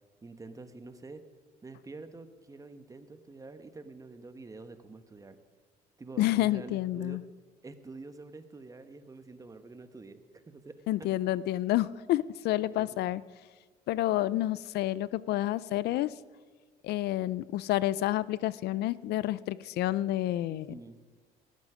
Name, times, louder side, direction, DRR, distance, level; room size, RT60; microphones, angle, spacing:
voice 1, 0.2-1.2 1.6-5.4 6.0-7.2 7.6-11.1 12.7-12.9 20.5-21.0, right 3 dB, 20° right, 9 dB, 1.3 m, -47 dB
voice 2, 6.2-7.2 10.9-13.2 13.9-16.1 16.8-20.7, left 15 dB, 75° left, 19 dB, 0.5 m, -29 dB
18.0 x 13.5 x 5.0 m, 1.4 s
cardioid pair, 110°, 17 cm